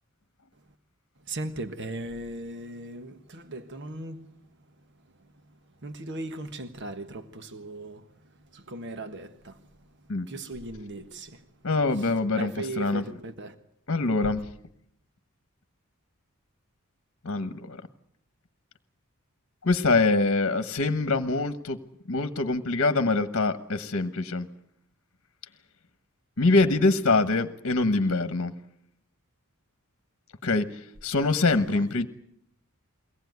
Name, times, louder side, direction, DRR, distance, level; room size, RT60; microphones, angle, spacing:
voice 1, 1.3-4.3 5.8-8.0 8.5-9.6 10.3-11.4 12.3-13.5 31.5-31.6, right 2 dB, 55° right, 1.5 m, -37 dB
voice 2, 11.6-13.2 13.9-14.5 17.2-17.8 19.6-21.8 22.1-24.5 26.4-28.5 30.4-32.1, left 3 dB, 55° left, 1.2 m, -24 dB
23.0 x 18.0 x 9.4 m
head